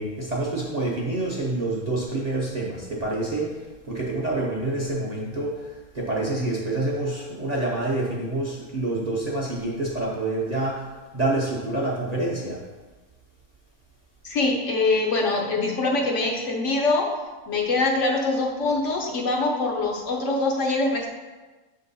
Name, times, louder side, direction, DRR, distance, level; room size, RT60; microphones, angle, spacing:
voice 1, 0.0-3.5 3.8-5.7 5.9-10.8 11.1-12.6, right 2 dB, 35° right, -4 dB, 0.8 m, -27 dB
voice 2, 14.2-17.1 17.5-21.1, left 3 dB, 60° left, 0 dB, 1.0 m, -24 dB
6.3 x 3.7 x 4.1 m, 1.2 s
omnidirectional pair, 1.5 m